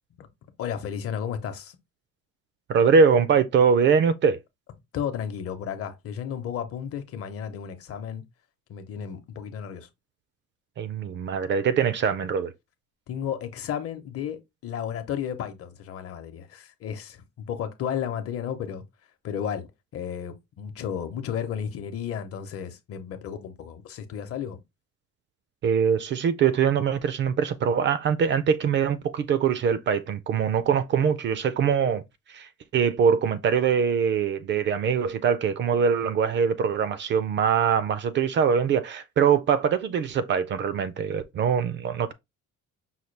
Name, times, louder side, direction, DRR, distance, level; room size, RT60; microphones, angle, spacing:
voice 1, 0.6-1.8 4.9-8.2 8.7-9.9 13.1-18.8 19.2-24.6, left 8 dB, 50° left, 0.8 m, -33 dB
voice 2, 2.7-4.4 10.8-12.5 25.6-32.0 32.3-42.1, right 6 dB, 40° right, 0.4 m, -23 dB
5.6 x 2.2 x 3.2 m
cardioid pair, 160°, 29 cm